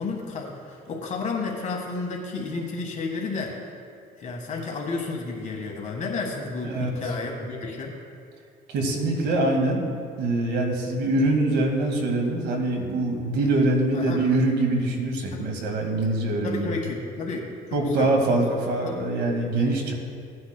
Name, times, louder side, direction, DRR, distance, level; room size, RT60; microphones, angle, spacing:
voice 1, 0.0-3.6 4.2-7.9 13.9-14.2 15.3-15.5 16.4-17.5 18.0-18.1 18.5-18.6, left 3 dB, 45° left, 1 dB, 1.6 m, -31 dB
voice 2, 6.6-7.0 8.7-9.9 10.2-16.7 17.7-19.9, right 2 dB, 80° right, 2 dB, 1.9 m, -24 dB
17.5 x 9.5 x 2.2 m, 2.3 s
cardioid pair, 110°, 17 cm